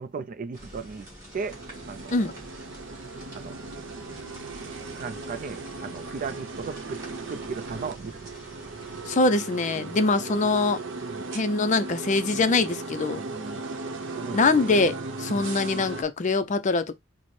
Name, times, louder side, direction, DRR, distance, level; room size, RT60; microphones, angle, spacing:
voice 1, 0.0-2.3 3.3-3.6 4.9-7.0 7.3-8.3 9.8-10.0 11.0-11.3 12.3-12.4 13.1-13.7 14.1-14.4 15.3-15.4, right 5 dB, 40° right, 0.4 m, -37 dB
sound 1, 0.5-9.1, right 1 dB, 20° right, 2.4 m, -47 dB
sound 2, 1.4-16.0, right 3 dB, 65° right, 0.7 m, -37 dB
voice 2, 9.1-10.8 11.3-13.2 14.3-16.9, left 3 dB, 40° left, 0.4 m, -23 dB
4.7 x 2.0 x 4.2 m
head